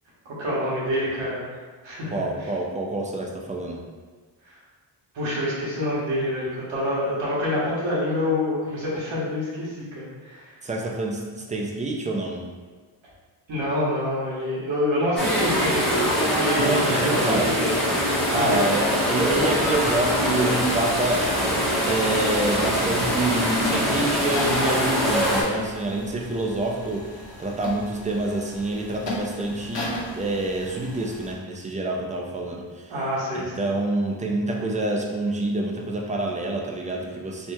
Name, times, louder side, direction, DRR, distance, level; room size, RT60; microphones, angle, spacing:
voice 1, 0.2-1.4 1.8-2.2 4.5-4.6 5.1-10.5 13.5-17.7 18.3-18.6 32.9-33.6, left 1 dB, 70° right, -7 dB, 1.4 m, -27 dB
voice 2, 2.1-3.8 10.6-12.5 16.6-17.5 18.3-29.9 30.1-32.9 33.3-37.5, right 2 dB, 20° right, 0 dB, 0.3 m, -27 dB
sound 1, 15.2-25.4, equal, ahead, 1.0 m, -23 dB
sound 2, 19.3-31.3, left 1 dB, 60° left, 0.8 m, -37 dB
4.4 x 2.7 x 2.2 m, 1.4 s
wide cardioid pair, 120°, 47 cm